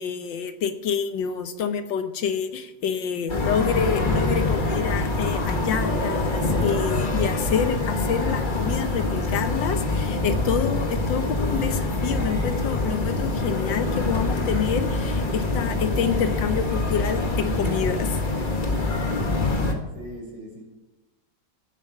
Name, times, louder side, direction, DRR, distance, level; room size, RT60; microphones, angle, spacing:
voice 1, 0.0-18.2, left 7 dB, 85° left, 9 dB, 1.7 m, -27 dB
sound 1, 3.3-19.7, left 2 dB, 30° left, 1.4 m, -25 dB
sound 2, 12.5-18.5, left 2 dB, 65° left, 1.7 m, -43 dB
voice 2, 19.9-20.6, equal, 80° right, 0 dB, 4.7 m, -41 dB
16.0 x 8.5 x 5.6 m, 1.1 s
omnidirectional pair, 2.0 m